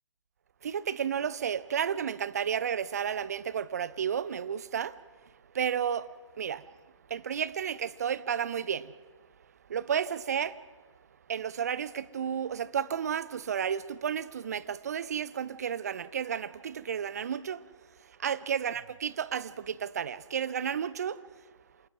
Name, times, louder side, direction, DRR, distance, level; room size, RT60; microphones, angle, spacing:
voice 1, 0.6-5.0 5.5-6.1 6.4-6.6 7.1-8.9 9.7-10.6 11.3-17.6 18.2-21.2, right 8 dB, 30° right, 0.6 m, -32 dB
27.0 x 19.0 x 6.0 m
figure-of-eight pair, 150°, 16 cm